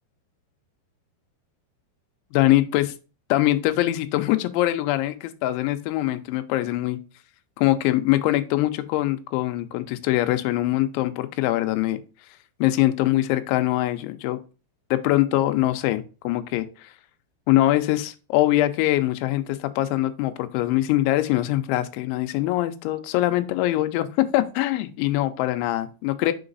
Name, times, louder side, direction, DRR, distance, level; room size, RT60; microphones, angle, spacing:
voice 1, 2.3-2.9 3.3-7.0 7.6-12.0 12.6-14.4 14.9-16.9 17.5-26.3, left 15 dB, 85° left, 10 dB, 2.9 m, -23 dB
6.6 x 3.9 x 3.9 m, 0.33 s
omnidirectional pair, 5.3 m